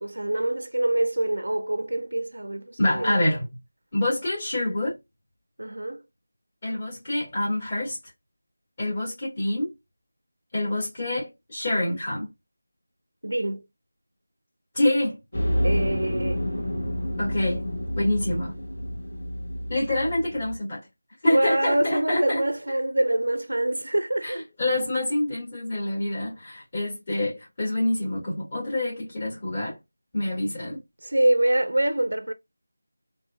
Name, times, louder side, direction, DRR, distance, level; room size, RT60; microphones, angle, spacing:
voice 1, 0.0-3.2 5.6-6.0 13.2-13.7 15.6-16.5 21.3-24.4 31.0-32.3, right 1 dB, 85° right, 0.4 m, -25 dB
voice 2, 2.8-3.5 3.9-5.0 6.6-8.0 8.8-9.7 10.5-12.3 14.7-15.2 17.2-17.6 18.0-18.5 19.7-20.8 21.2-22.4 24.2-29.8 30.1-30.8, left 1 dB, 30° left, 2.0 m, -26 dB
sound 1, 15.3-20.6, equal, 55° left, 1.9 m, -29 dB
3.6 x 2.9 x 2.2 m
figure-of-eight pair, 175°, 0 cm